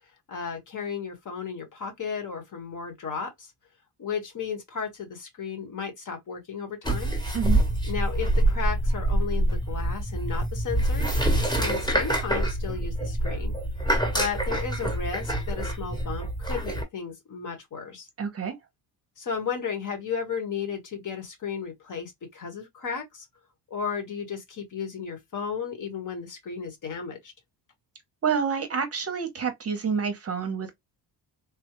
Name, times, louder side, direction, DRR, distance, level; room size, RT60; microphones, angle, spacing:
voice 1, 0.3-3.5 4.0-7.1 7.9-13.5 14.1-18.1 19.2-23.3 23.7-27.3, left 6 dB, 45° left, 1.2 m, -34 dB
sound 1, 6.8-16.8, right 1 dB, 10° left, 1.1 m, -26 dB
voice 2, 18.2-18.5 28.2-30.7, right 6 dB, 35° right, 0.7 m, -28 dB
3.5 x 2.2 x 2.9 m
cardioid pair, 150°, 42 cm